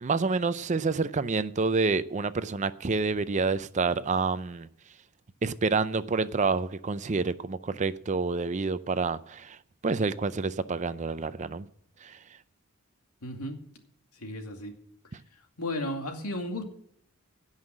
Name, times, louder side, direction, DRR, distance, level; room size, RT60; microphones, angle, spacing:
voice 1, 0.0-4.7 5.4-9.6 9.8-11.7 12.0-12.2, right 4 dB, 30° right, 0.5 m, -28 dB
voice 2, 13.2-13.6 14.1-14.8 15.1-15.2 15.6-16.6, left 1 dB, 90° left, 2.3 m, -34 dB
17.0 x 5.7 x 7.7 m
head